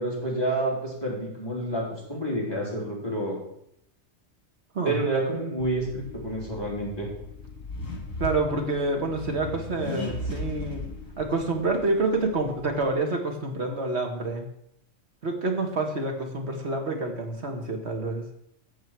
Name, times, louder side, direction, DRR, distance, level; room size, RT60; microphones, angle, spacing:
voice 1, 0.0-3.4 4.8-7.1, right 1 dB, 20° left, -4 dB, 3.7 m, -29 dB
Accelerating revving vroom, 5.6-12.9, left 2 dB, 75° left, 2.6 m, -38 dB
voice 2, 8.2-10.9 11.2-14.5 15.2-18.2, right 2 dB, 55° right, 3 dB, 1.8 m, -28 dB
11.5 x 7.6 x 4.6 m, 0.73 s
omnidirectional pair, 1.3 m